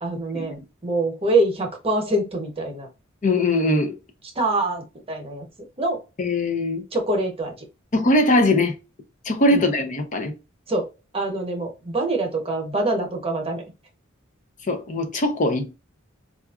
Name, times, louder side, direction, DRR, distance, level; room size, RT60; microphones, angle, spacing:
voice 1, 0.0-2.9 4.4-5.4 5.8-6.0 6.9-7.5 9.5-9.6 10.7-10.9 11.1-13.6, right 2 dB, 30° right, 0.9 m, -24 dB
voice 2, 3.2-3.9 6.2-6.8 7.9-8.7 9.2-10.3 14.7-15.7, left 1 dB, 40° left, 0.6 m, -21 dB
4.5 x 2.5 x 2.4 m
head